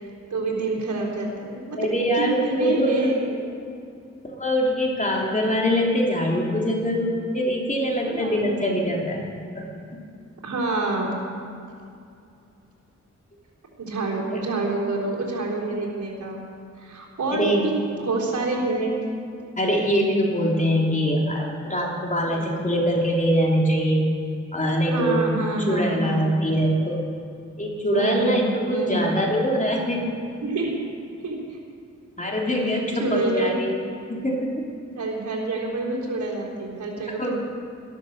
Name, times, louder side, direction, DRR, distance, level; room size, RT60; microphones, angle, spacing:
voice 1, 0.3-1.9 2.1-3.4 8.0-8.5 10.4-11.2 13.8-16.4 16.8-17.7 18.0-18.9 22.3-22.5 24.9-26.4 27.9-29.2 30.4-30.7 31.2-31.4 32.6-33.6 35.0-37.3, right 2 dB, 75° right, -4 dB, 3.9 m, -27 dB
voice 2, 1.8-3.1 4.4-9.2 9.5-9.7 11.0-11.2 14.3-14.4 17.3-17.7 18.8-18.9 19.6-24.1 24.5-25.3 25.6-27.0 27.6-30.1 32.2-33.8 34.1-34.6 37.2-37.3, equal, 25° left, -2 dB, 3.3 m, -23 dB
13.5 x 12.5 x 6.7 m, 2.5 s
cardioid pair, 65°, 29 cm